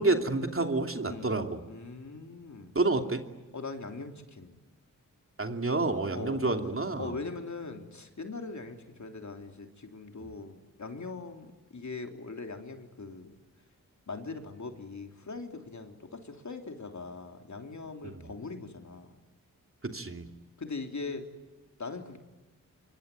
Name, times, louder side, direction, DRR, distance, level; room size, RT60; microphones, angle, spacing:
voice 1, 0.0-1.6 2.7-3.2 5.4-7.1 18.0-18.2 19.8-20.2, right 2 dB, 40° right, 5 dB, 2.9 m, -29 dB
voice 2, 1.0-1.4 1.7-2.7 3.5-4.5 6.1-6.4 7.0-13.4 14.1-19.2 20.6-21.2 21.8-22.2, left 3 dB, 55° left, 4 dB, 3.5 m, -41 dB
26.5 x 24.0 x 9.3 m, 1.2 s
cardioid pair, 65°, 34 cm